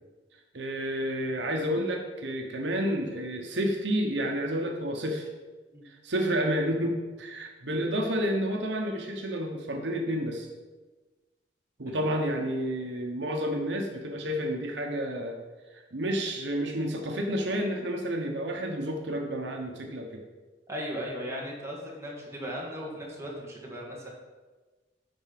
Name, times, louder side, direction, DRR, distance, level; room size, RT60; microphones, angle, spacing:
voice 1, 0.5-5.3 5.8-10.5 11.8-15.4 15.9-20.2, equal, 75° right, 2 dB, 1.1 m, -30 dB
voice 2, 20.7-24.1, equal, 15° right, -3 dB, 2.1 m, -37 dB
10.5 x 4.6 x 5.9 m, 1.3 s
head